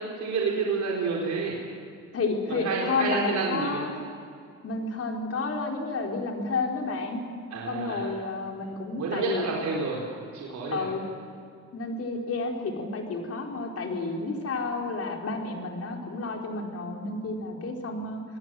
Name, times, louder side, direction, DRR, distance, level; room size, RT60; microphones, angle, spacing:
voice 1, 0.1-1.6 2.5-3.9 7.5-8.1 9.0-10.0 10.3-10.9, right 4 dB, 70° right, -2 dB, 4.4 m, -29 dB
voice 2, 2.1-4.0 4.6-7.2 7.7-9.5 10.7-11.0 11.7-18.2, left 3 dB, 50° left, 1 dB, 4.6 m, -31 dB
28.0 x 19.5 x 7.9 m, 2.3 s
cardioid pair, 90°, 30 cm